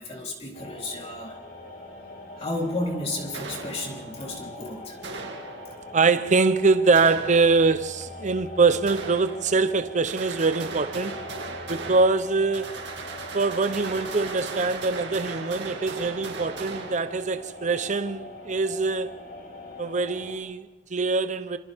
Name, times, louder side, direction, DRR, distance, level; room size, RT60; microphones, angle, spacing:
voice 1, 0.0-1.4 2.4-5.0, left 2 dB, 35° left, 3.8 m, -32 dB
sound 1, 0.5-20.4, left 2 dB, 55° left, 5.5 m, -42 dB
sound 2, 3.3-4.3 5.0-6.0 6.9-7.9 8.9-9.8 10.1-17.6, right 4 dB, 75° right, 2.5 m, -38 dB
voice 2, 5.9-11.2 11.7-12.8 13.3-19.1 19.8-21.6, right 4 dB, 40° right, 0.8 m, -23 dB
28.0 x 27.0 x 3.6 m
head